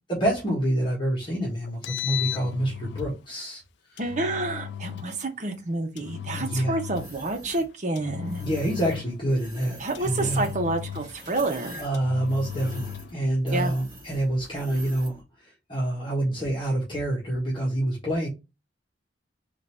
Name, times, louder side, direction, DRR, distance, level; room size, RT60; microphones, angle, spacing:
voice 1, 0.1-3.6 3.9-4.0 6.3-6.9 8.4-10.5 11.8-18.3, right 1 dB, 30° left, 1.3 m, -27 dB
Engine, 1.7-3.2 4.0-5.2 6.0-7.2 8.0-9.2 9.9-11.3 11.9-13.2, left 10 dB, 80° left, 0.4 m, -36 dB
voice 2, 4.0-8.4 9.8-11.8 13.5-13.7, right 2 dB, 45° right, 1.0 m, -29 dB
sound 1, 6.9-7.7 8.2-9.0 9.3-15.2, right 1 dB, 25° right, 1.9 m, -45 dB
3.9 x 2.6 x 4.3 m
head